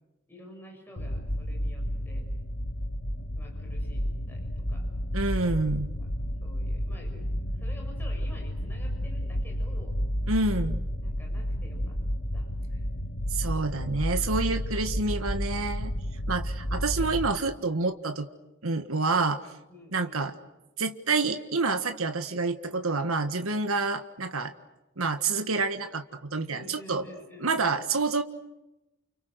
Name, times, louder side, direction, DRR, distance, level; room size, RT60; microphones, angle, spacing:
voice 1, 0.3-2.3 3.3-4.9 6.0-6.1 6.4-7.3 7.6-10.0 11.0-12.0 12.3-12.9 16.7-17.0 19.7-20.2 26.5-27.5, left 1 dB, 10° left, 0 dB, 6.5 m, -49 dB
sound 1, 1.0-17.3, equal, 50° left, 1.7 m, -31 dB
voice 2, 5.1-5.9 10.3-10.8 13.3-15.9 16.3-18.3 18.6-19.4 19.9-20.3 20.8-24.5 25.0-27.1 27.4-28.2, right 3 dB, 75° right, 7 dB, 1.6 m, -28 dB
30.0 x 29.0 x 6.4 m, 0.99 s
head